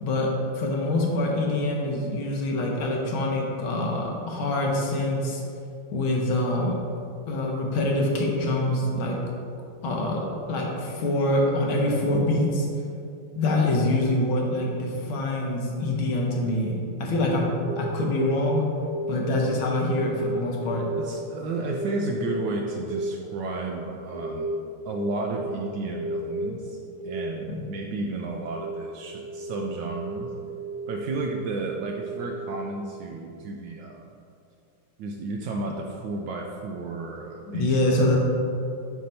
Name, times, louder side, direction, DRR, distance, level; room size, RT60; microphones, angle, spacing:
voice 1, 0.0-5.4 5.9-6.8 7.3-9.2 9.8-10.2 10.5-12.7 13.4-18.6 19.1-20.8 27.5-27.6 37.5-38.2, left 1 dB, 75° left, -1 dB, 1.7 m, -25 dB
sound 1, 17.7-33.3, right 1 dB, 45° left, 1.4 m, -34 dB
voice 2, 20.9-24.5 24.8-30.3 30.9-34.0 35.0-37.9, right 3 dB, 80° right, 1 dB, 1.0 m, -32 dB
7.5 x 2.8 x 5.4 m, 2.5 s
omnidirectional pair, 2.4 m